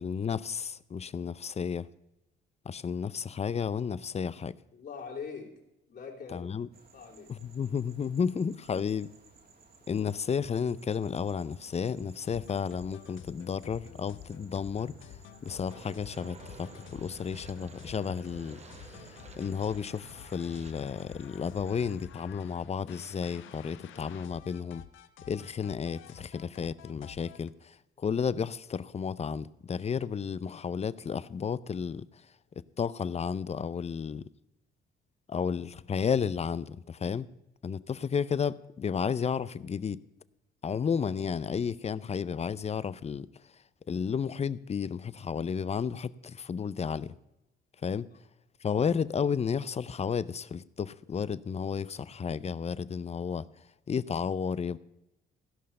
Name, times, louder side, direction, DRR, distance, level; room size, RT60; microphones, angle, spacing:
voice 1, 0.0-1.9 2.7-4.5 6.3-6.7 7.3-9.1 9.9-15.1 15.4-24.8 25.3-32.1 32.8-34.2 35.3-37.3 37.6-40.0 40.6-43.3 43.9-47.1 47.8-48.1 48.6-53.5 53.9-54.8, left 6 dB, 30° left, 0.5 m, -32 dB
voice 2, 4.7-5.6 5.9-6.6 6.9-7.4 8.3-8.5 48.1-48.2, left 5 dB, 55° left, 3.3 m, -43 dB
sound 1, 6.7-22.1, right 3 dB, 50° right, 2.5 m, -58 dB
sound 2, 12.2-27.5, left 10 dB, 80° left, 0.9 m, -50 dB
sound 3, 15.7-20.7, right 4 dB, 35° right, 1.3 m, -51 dB
16.0 x 5.6 x 6.6 m
cardioid pair, 90°, 20 cm